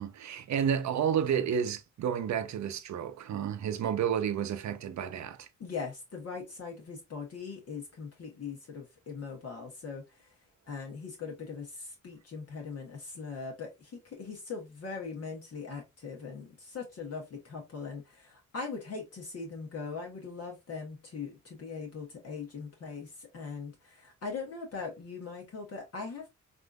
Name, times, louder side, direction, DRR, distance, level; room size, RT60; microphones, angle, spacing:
voice 1, 0.0-5.5, right 8 dB, 60° right, 0.6 m, -31 dB
voice 2, 5.6-10.3 10.7-26.3, left 5 dB, 50° left, 1.0 m, -41 dB
3.5 x 2.6 x 2.2 m
cardioid pair, 75°, 32 cm